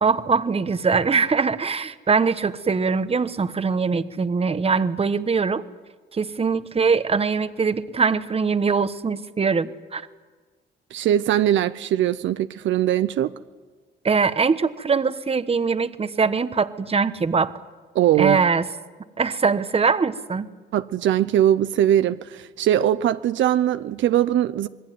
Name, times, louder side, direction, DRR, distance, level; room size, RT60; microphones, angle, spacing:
voice 1, 0.0-5.6 6.1-10.0 14.0-17.5 18.2-18.7 19.2-20.5, right 5 dB, 30° right, 12 dB, 1.2 m, -22 dB
voice 2, 10.9-13.3 17.9-18.4 20.7-24.7, right 11 dB, 75° right, 12 dB, 0.7 m, -21 dB
26.5 x 20.5 x 9.4 m, 1.4 s
cardioid pair, 90°, 20 cm